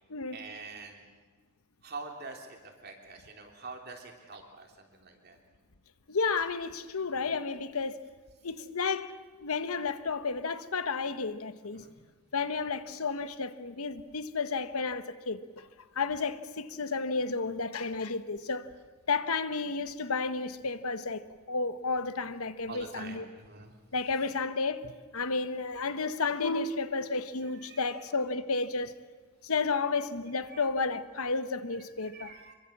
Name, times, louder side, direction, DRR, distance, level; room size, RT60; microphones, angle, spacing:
voice 1, 0.3-1.0 1.8-5.4 7.1-7.3 11.7-11.9 22.7-23.7 27.4-28.0 30.5-30.6 31.7-32.5, right 3 dB, 45° right, 3.3 m, -46 dB
voice 2, 6.1-7.9 8.4-9.2 9.4-11.9 12.3-15.7 15.9-18.7 19.1-21.2 21.5-23.2 23.9-28.9 29.4-32.3, left 4 dB, 75° left, 1.1 m, -32 dB
25.5 x 23.0 x 7.3 m
head